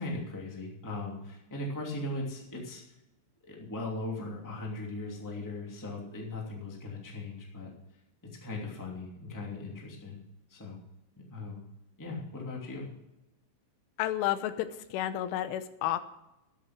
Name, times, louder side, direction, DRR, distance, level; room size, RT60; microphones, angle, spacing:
voice 1, 0.0-2.8 3.4-7.7 8.4-10.2 10.5-10.8 11.3-11.6 12.0-12.9, left 2 dB, 5° left, -1 dB, 1.4 m, -38 dB
voice 2, 14.0-16.0, left 12 dB, 90° left, 11 dB, 3.4 m, -31 dB
13.5 x 9.6 x 6.0 m, 0.92 s
omnidirectional pair, 5.5 m